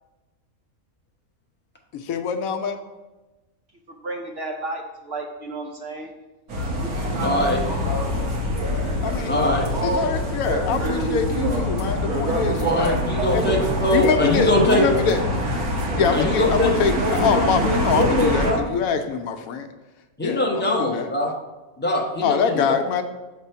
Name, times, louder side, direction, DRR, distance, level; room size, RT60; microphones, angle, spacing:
voice 1, 1.9-2.8 8.2-8.3 8.7-9.4 9.8-13.0 13.3-15.2 15.9-19.7 20.2-21.1 22.2-23.0, left 6 dB, 75° left, 7 dB, 1.0 m, -24 dB
voice 2, 3.9-6.1 6.7-6.9 7.4-8.1, right 1 dB, 60° right, 2 dB, 0.7 m, -33 dB
sound 1, 6.5-18.5, equal, 85° right, 1.6 m, -24 dB
voice 3, 7.2-7.6 9.3-9.7 12.6-14.9 16.1-17.5 17.9-18.6 20.2-21.3 21.8-22.8, left 1 dB, 10° left, -1 dB, 0.6 m, -22 dB
6.6 x 3.4 x 5.5 m, 1.1 s
omnidirectional pair, 1.5 m